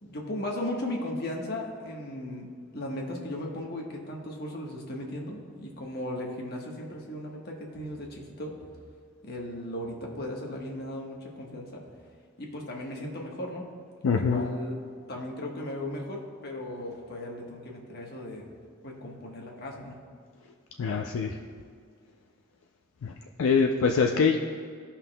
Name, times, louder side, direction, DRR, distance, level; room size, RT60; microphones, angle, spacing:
voice 1, 0.0-2.5 2.7-8.5 9.2-11.8 12.4-13.7 14.2-14.8 15.1-18.5 18.8-20.0, left 1 dB, 50° left, 0 dB, 1.2 m, -36 dB
voice 2, 14.0-14.5 20.8-21.4 23.0-23.1 23.4-24.4, left 5 dB, 90° left, 2 dB, 0.4 m, -24 dB
14.0 x 5.7 x 2.2 m, 2.2 s
head